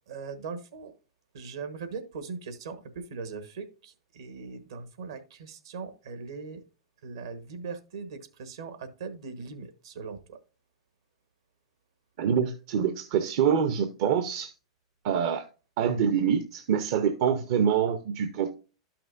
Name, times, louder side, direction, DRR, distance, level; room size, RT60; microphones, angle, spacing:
voice 1, 0.1-0.9 1.3-6.6 7.0-10.4, right 5 dB, 75° right, 1.2 m, -40 dB
voice 2, 12.2-14.5 15.0-15.5 15.8-18.5, right 7 dB, 60° right, 0.7 m, -25 dB
12.0 x 5.9 x 2.5 m
hypercardioid pair, 100°, 2 cm